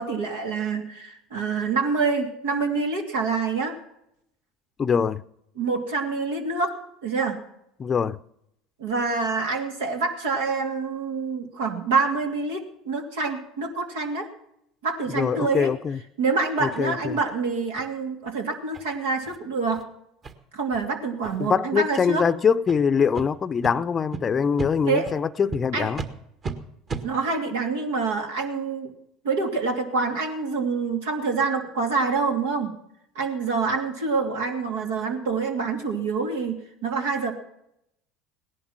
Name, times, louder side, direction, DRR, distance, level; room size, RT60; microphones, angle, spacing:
voice 1, 0.0-3.8 5.6-7.4 8.8-14.3 14.8-15.7 16.2-19.8 20.5-22.2 24.9-25.1 25.7-25.9 27.0-28.9 29.2-32.7 33.1-36.5 36.8-37.3, right 4 dB, 85° right, 2.8 m, -26 dB
voice 2, 4.8-5.2 7.8-8.2 15.1-16.0 16.6-17.2 21.4-26.0, left 6 dB, 35° left, 0.6 m, -23 dB
sound 1, 16.7-16.8 17.3-17.4 17.7-17.9 18.2-18.3 18.7-18.8 19.2-19.4 19.7-19.8 20.2-20.3 20.7-20.8 21.2-21.5 22.1-22.3 22.6-22.8 23.1-23.3 23.6-23.7 24.1-24.2 24.6-24.7 25.0-25.2 25.5-25.6 25.9-26.1 26.4-26.5 26.9-27.0, right 4 dB, 35° right, 1.8 m, -34 dB
18.0 x 11.0 x 5.9 m
hypercardioid pair, 80°, 0 cm